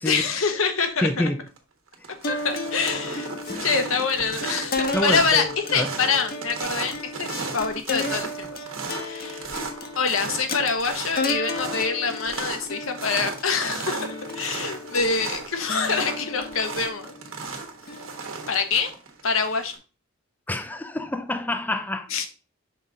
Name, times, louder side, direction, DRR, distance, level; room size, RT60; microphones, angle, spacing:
voice 1, 0.0-1.3 2.3-3.3 3.6-8.5 9.0-9.5 9.9-14.1 14.3-17.1 18.5-18.9 19.2-19.7 22.1-22.3, left 5 dB, 75° left, 1.0 m, -25 dB
voice 2, 1.0-1.4 3.5-3.7 4.9-5.5 5.7-5.9 20.5-22.1, left 1 dB, 10° left, 0.4 m, -27 dB
sound 1, 1.2-1.6 1.9-19.8, right 4 dB, 70° right, 1.3 m, -35 dB
sound 2, 2.2-18.7, left 2 dB, 45° left, 0.8 m, -34 dB
5.6 x 3.9 x 4.6 m
head